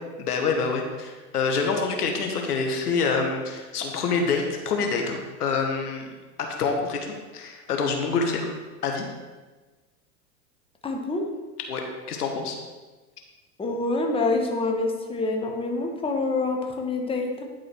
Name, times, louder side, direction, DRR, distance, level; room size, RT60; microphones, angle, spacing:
voice 1, 0.2-6.1 6.4-7.0 7.3-8.5 8.8-9.0 11.7-12.6, left 4 dB, 85° left, 3 dB, 1.5 m, -26 dB
voice 2, 10.8-11.3 13.6-17.4, left 3 dB, 10° left, 2 dB, 1.2 m, -26 dB
10.0 x 4.8 x 4.6 m, 1.3 s
hypercardioid pair, 100°, 45 cm